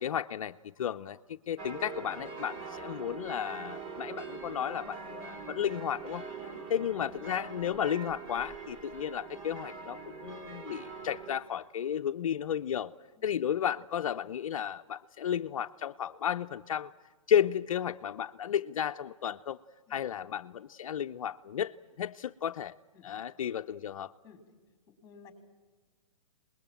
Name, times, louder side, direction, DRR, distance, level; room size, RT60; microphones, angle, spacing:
voice 1, 0.0-6.2 6.7-12.9 13.2-16.9 17.3-19.6 19.9-22.8 23.0-24.1, left 9 dB, 75° left, 8 dB, 0.7 m, -33 dB
sound 1, 1.6-11.4, right 5 dB, 30° right, 3.0 m, -43 dB
voice 2, 6.4-7.0 19.9-20.1 22.9-23.1 24.2-24.4 25.0-25.3, left 5 dB, 20° left, 7 dB, 4.3 m, -54 dB
25.5 x 20.5 x 8.9 m, 1.4 s
hypercardioid pair, 140°, 18 cm